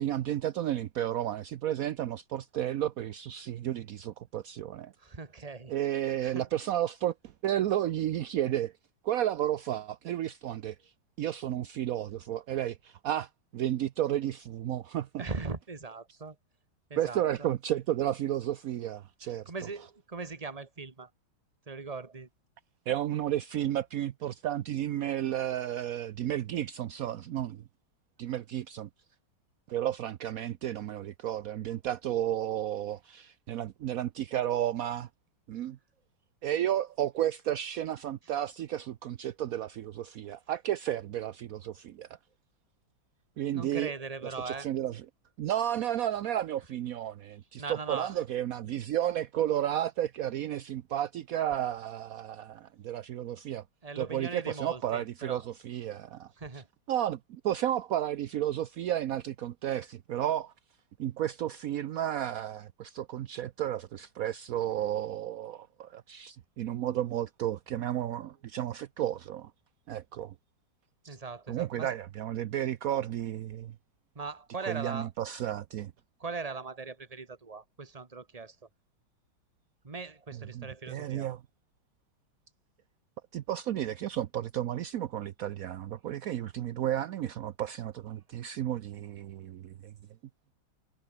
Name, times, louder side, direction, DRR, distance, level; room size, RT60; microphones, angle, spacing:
voice 1, 0.0-4.9 5.7-7.1 7.4-8.7 9.0-10.8 11.2-15.2 17.0-19.5 22.9-27.6 28.2-28.9 29.7-35.1 35.5-35.8 36.4-42.2 43.4-43.9 44.5-45.0 45.4-53.6 54.0-56.3 56.9-60.5 61.0-69.5 69.9-70.3 71.0-71.2 71.5-73.7 74.6-75.9 80.5-81.4 83.3-89.9, right 11 dB, 70° right, 0.8 m, -32 dB
voice 2, 5.0-5.7 6.1-6.5 15.2-16.4 16.9-17.5 19.2-21.1 21.7-22.3 43.5-44.7 47.6-48.2 53.8-55.5 56.4-56.7 71.1-71.9 74.1-75.1 76.2-78.6 79.8-81.3, right 4 dB, 20° right, 1.5 m, -40 dB
omnidirectional pair, 2.2 m